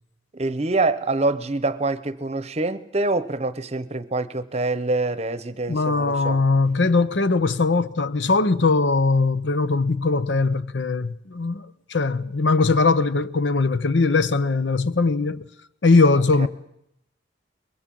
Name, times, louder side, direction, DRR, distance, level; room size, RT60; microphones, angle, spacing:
voice 1, 0.3-6.4 16.4-16.5, right 2 dB, 35° right, 0.8 m, -25 dB
voice 2, 5.7-15.5 15.8-16.5, left 3 dB, 75° left, 0.8 m, -20 dB
22.5 x 20.5 x 7.6 m
head